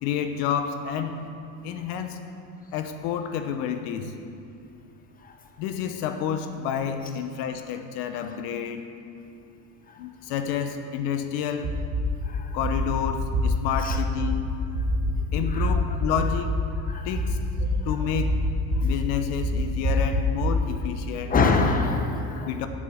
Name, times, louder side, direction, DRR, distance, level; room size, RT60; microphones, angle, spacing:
voice 1, 0.0-1.2 1.6-2.2 2.7-4.1 5.6-8.9 10.0-11.7 12.5-14.5 15.3-16.5 17.0-17.4 17.8-18.3 18.8-21.3 22.4-22.7, left 8 dB, 75° left, 8 dB, 0.9 m, -29 dB
sound 1, 11.6-12.0 12.6-12.9 13.3-13.4 13.9-14.3 14.7-15.1 15.6-15.7 16.2-16.5 17.2-17.7 18.1-18.8 19.4-20.5, right 2 dB, 50° right, 1.8 m, -25 dB
voice 2, 12.2-12.6 13.8-14.0 15.3-15.7 16.9-17.1 17.8-17.9 21.3-22.6, left 4 dB, 20° left, 5 dB, 0.8 m, -25 dB
7.6 x 6.3 x 7.4 m, 2.6 s
supercardioid pair, 120°, 43 cm